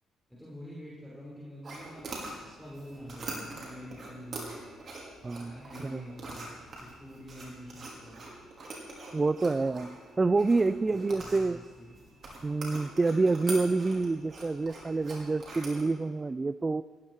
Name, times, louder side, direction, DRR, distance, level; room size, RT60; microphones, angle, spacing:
voice 1, 0.3-2.1 2.4-4.5 5.5-8.2 10.9-12.0, equal, ahead, -7 dB, 5.7 m, -46 dB
sound 1, 1.6-15.8, right 2 dB, 50° right, 5.2 m, -44 dB
voice 2, 5.2-5.6 5.8-6.0 9.1-11.6 12.4-16.8, right 3 dB, 25° right, 16 dB, 0.4 m, -27 dB
17.5 x 15.5 x 4.9 m, 1.5 s
cardioid pair, 75°, 0 cm